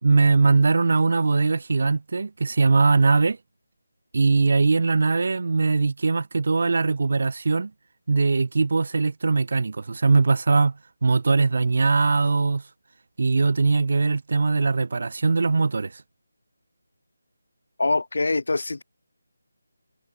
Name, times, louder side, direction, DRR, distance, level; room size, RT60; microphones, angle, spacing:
voice 1, 0.0-3.4 4.1-7.7 8.1-10.7 11.0-12.6 13.2-15.9, right 4 dB, 55° right, 2.4 m, -21 dB
voice 2, 17.8-18.8, left 3 dB, 65° left, 4.0 m, -24 dB
figure-of-eight pair, 160°, 0 cm